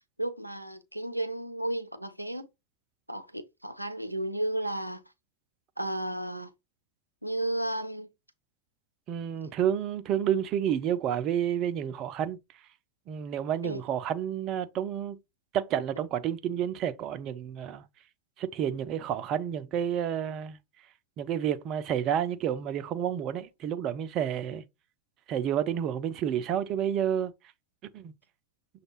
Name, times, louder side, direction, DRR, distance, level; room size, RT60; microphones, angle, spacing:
voice 1, 0.2-2.5 3.1-5.0 5.8-6.5 7.2-8.1 9.4-9.5 13.6-13.8, right 1 dB, 90° right, 0.5 m, -33 dB
voice 2, 9.1-12.4 13.1-15.2 15.5-17.8 18.4-20.6 21.2-24.6 25.3-27.3 27.9-28.1, right 9 dB, 35° right, 0.5 m, -30 dB
6.3 x 2.3 x 3.1 m
figure-of-eight pair, 90°, 0 cm